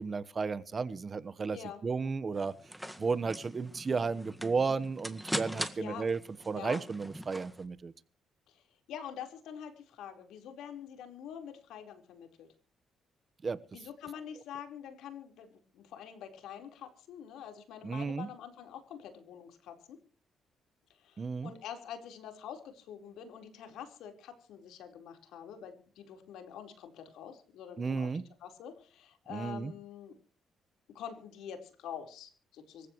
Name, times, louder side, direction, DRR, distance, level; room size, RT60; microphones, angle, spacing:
voice 1, 0.0-2.5 3.0-6.2 6.5-7.9 13.4-13.6 17.8-18.3 21.2-21.5 27.8-28.2 29.3-29.7, right 4 dB, 35° right, 16 dB, 1.2 m, -33 dB
voice 2, 1.5-1.8 5.8-6.1 6.5-6.8 8.5-8.6 8.9-12.5 13.7-15.5 15.7-20.0 21.0-28.1 28.4-30.1 30.9-32.9, left 8 dB, 85° left, 6 dB, 4.4 m, -46 dB
sound 1, 2.3-7.6, equal, ahead, 1.8 m, -41 dB
25.5 x 15.5 x 3.2 m, 0.40 s
cardioid pair, 90°, 0 cm